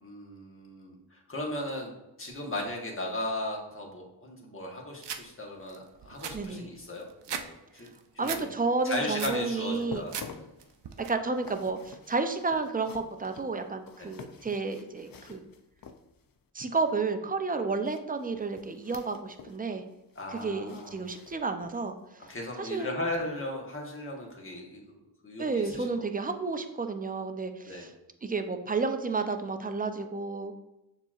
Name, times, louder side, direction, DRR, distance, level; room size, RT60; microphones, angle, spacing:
voice 1, 0.0-7.9 8.1-8.5 8.8-10.1 10.4-10.5 14.0-14.1 20.1-21.0 22.3-26.3 27.7-27.9, left 1 dB, 30° left, -1 dB, 1.2 m, -37 dB
sound 1, 5.0-5.2 5.7-5.8 6.0-7.5 7.8-8.4 8.8-9.4 9.8-10.3 10.6-11.1, right 7 dB, 75° right, 0.5 m, -37 dB
voice 2, 6.3-6.7 8.2-10.0 11.1-15.5 16.5-19.8 20.3-22.3 22.6-22.9 25.4-27.9 28.2-30.5, right 4 dB, 20° right, 7 dB, 0.4 m, -31 dB
sound 2, 9.7-16.4 17.8-19.6 19.9-21.9 22.3-22.5 23.0-23.1, left 6 dB, 55° left, 0.5 m, -49 dB
6.6 x 3.0 x 2.4 m, 0.92 s
wide cardioid pair, 60°, 43 cm